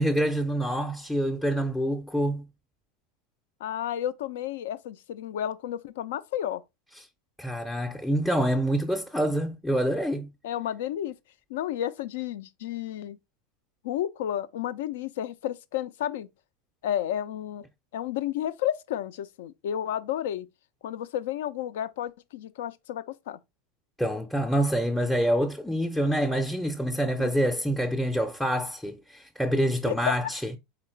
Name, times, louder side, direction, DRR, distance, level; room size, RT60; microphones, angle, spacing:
voice 1, 0.0-2.5 7.4-10.3 24.0-30.5, equal, ahead, 0.5 m, -26 dB
voice 2, 3.6-6.6 10.4-11.1 11.5-13.2 13.8-16.3 16.8-17.6 17.9-20.5 20.8-23.4 27.2-27.3 29.9-30.1, left 11 dB, 70° left, 0.4 m, -31 dB
4.3 x 3.9 x 3.1 m
hypercardioid pair, 85°, 0 cm